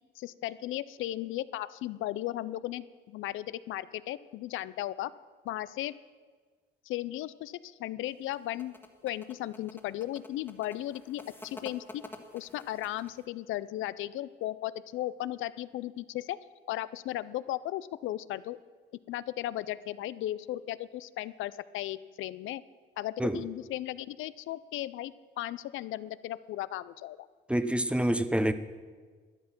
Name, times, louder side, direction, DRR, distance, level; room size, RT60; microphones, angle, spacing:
voice 1, 0.2-5.1 5.4-5.9 6.9-8.8 9.0-12.0 12.3-16.4 16.7-18.6 19.1-22.6 23.0-27.2, left 14 dB, 80° left, 16 dB, 0.4 m, -36 dB
sound 1, 8.1-13.3, left 2 dB, 10° left, 1.5 m, -49 dB
voice 2, 27.5-28.5, right 1 dB, 5° right, 12 dB, 0.7 m, -27 dB
12.5 x 9.5 x 6.0 m, 1.5 s
cardioid pair, 90°, 20 cm